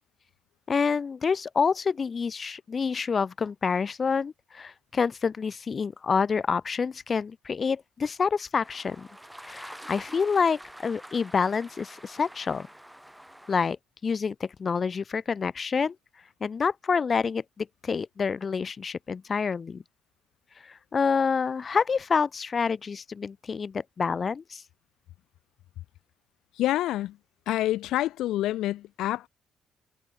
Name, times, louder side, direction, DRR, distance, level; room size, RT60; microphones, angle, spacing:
voice 1, 0.7-9.1 9.4-12.7 13.5-13.8 14.0-15.9 16.4-19.8 20.6-24.6, left 5 dB, 40° left, 1.4 m, -27 dB
sound 1, 8.6-13.6, right 1 dB, 5° right, 4.3 m, -46 dB
voice 2, 26.5-27.2 27.5-29.3, left 14 dB, 85° left, 0.7 m, -27 dB
cardioid pair, 90°, 0 cm